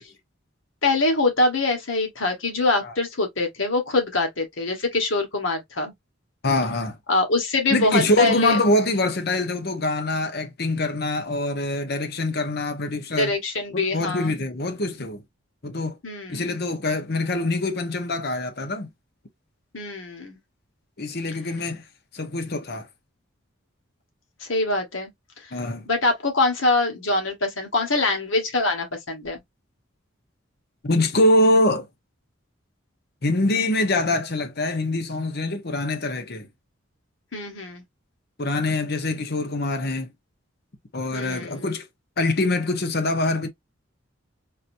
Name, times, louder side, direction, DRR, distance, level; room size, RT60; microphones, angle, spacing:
voice 1, 0.8-5.9 7.1-8.6 13.1-14.3 16.0-16.4 19.7-20.4 24.4-25.1 25.9-29.4 37.3-37.8 41.1-41.7, left 2 dB, 75° left, 1.5 m, -24 dB
voice 2, 6.4-7.0 7.7-13.4 13.7-15.2 15.6-16.0 16.3-18.9 21.0-21.8 22.1-22.9 25.5-25.8 30.8-31.9 33.2-36.5 38.4-40.1 40.9-41.8 42.2-43.5, left 2 dB, 55° left, 0.9 m, -24 dB
3.9 x 2.8 x 2.6 m
head